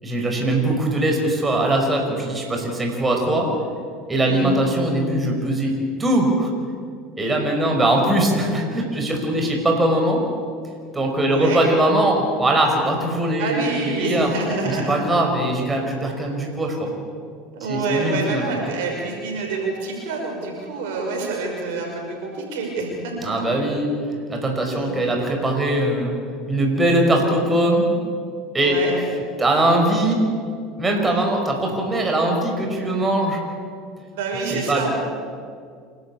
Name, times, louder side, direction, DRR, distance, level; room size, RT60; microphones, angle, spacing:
voice 1, 0.0-3.5 4.1-5.7 6.0-6.5 7.2-10.2 10.9-14.3 14.7-16.9 17.7-18.5 23.2-23.9 24.3-26.2 26.5-27.9 28.5-28.8 29.4-30.2 30.8-33.4 34.5-34.9, right 1 dB, 20° right, 1 dB, 5.2 m, -21 dB
voice 2, 11.3-11.6 13.4-14.9 17.5-23.3 24.7-24.9 28.6-29.0 31.1-31.3 34.1-34.9, right 3 dB, 75° right, 0 dB, 5.9 m, -27 dB
27.5 x 12.5 x 8.6 m, 2.2 s
hypercardioid pair, 80°, 0 cm